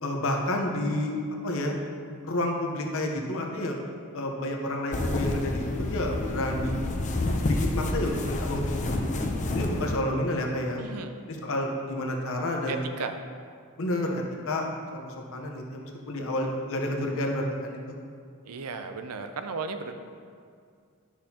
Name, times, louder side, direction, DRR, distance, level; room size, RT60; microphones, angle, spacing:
voice 1, 0.0-1.1 1.4-1.7 2.2-3.8 4.1-6.7 7.4-10.8 11.3-12.9 13.8-15.0 15.3-18.0, left 1 dB, 65° left, 1 dB, 0.9 m, -30 dB
sound 1, 4.9-10.0, left 2 dB, 35° left, 0.5 m, -29 dB
voice 2, 10.8-11.1 12.7-13.2 18.4-19.9, right 4 dB, 80° right, 7 dB, 0.6 m, -35 dB
10.0 x 6.1 x 2.8 m, 2.2 s
head